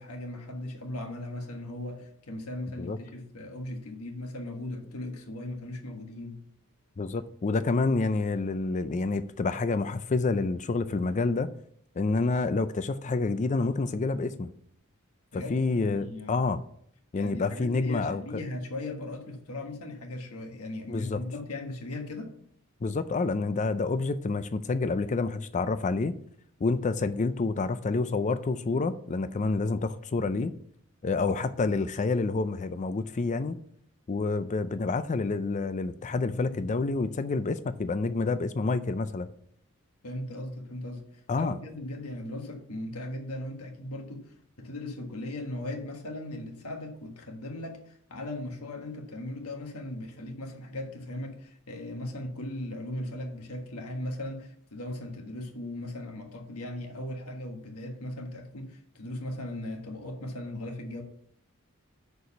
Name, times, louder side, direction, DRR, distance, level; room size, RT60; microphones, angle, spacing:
voice 1, 0.0-6.4 15.3-15.5 15.9-16.4 17.2-22.3 40.0-61.0, left 1 dB, 80° left, 1.5 m, -38 dB
voice 2, 7.0-11.5 12.0-14.5 15.3-16.6 17.1-18.2 20.9-21.2 22.8-26.1 26.6-30.5 31.0-33.6 34.1-39.3 41.3-41.6, left 3 dB, 35° left, 0.4 m, -28 dB
6.6 x 4.7 x 6.8 m
head